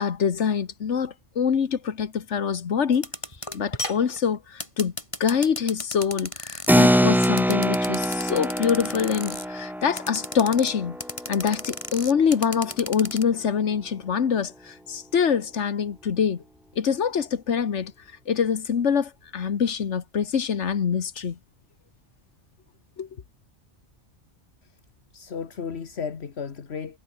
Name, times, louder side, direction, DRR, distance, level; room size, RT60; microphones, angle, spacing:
voice 1, 0.0-3.1 3.5-4.9 5.2-11.0 11.3-16.4 16.8-17.9 18.3-21.4 23.0-23.1, left 7 dB, 85° left, 1.6 m, -25 dB
sound 1, 2.9-6.8 7.2-9.4 10.0-10.7 11.0-13.2, left 1 dB, 25° left, 4.8 m, -34 dB
Keyboard (musical), 6.7-12.7, equal, ahead, 1.6 m, -24 dB
voice 2, 25.1-27.0, left 6 dB, 65° left, 1.6 m, -34 dB
omnidirectional pair, 1.2 m